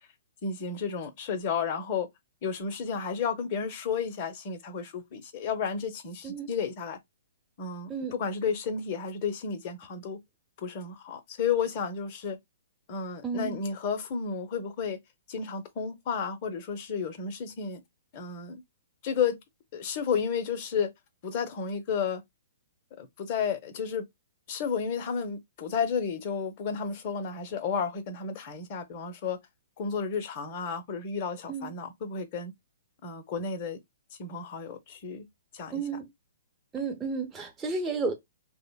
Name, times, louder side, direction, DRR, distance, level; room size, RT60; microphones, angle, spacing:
voice 1, 0.4-2.1 2.4-7.0 7.6-10.2 10.6-12.4 12.9-15.0 15.3-17.8 18.1-18.6 19.0-19.4 19.7-20.9 21.2-22.2 23.0-24.0 24.5-29.4 29.8-32.5 33.0-33.8 34.2-35.3 35.5-35.8, left 6 dB, 40° left, 0.6 m, -32 dB
voice 2, 13.2-13.6 31.5-31.7 35.7-36.1 36.7-38.1, right 4 dB, 15° right, 0.7 m, -32 dB
3.1 x 2.0 x 2.2 m
figure-of-eight pair, 120°, 0 cm